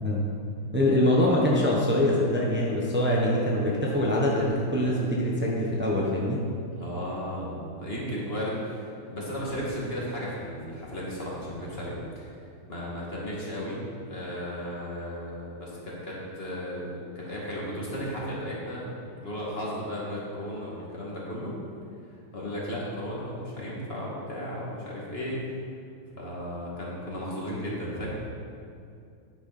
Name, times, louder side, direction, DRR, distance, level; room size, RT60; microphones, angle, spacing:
voice 1, 0.7-6.4, left 1 dB, 15° right, -4 dB, 0.4 m, -24 dB
voice 2, 6.7-12.3 12.7-13.8 14.1-21.5 22.3-25.3 26.2-28.1, equal, 30° left, -5 dB, 2.2 m, -35 dB
10.0 x 8.9 x 4.3 m, 2.4 s
omnidirectional pair, 2.4 m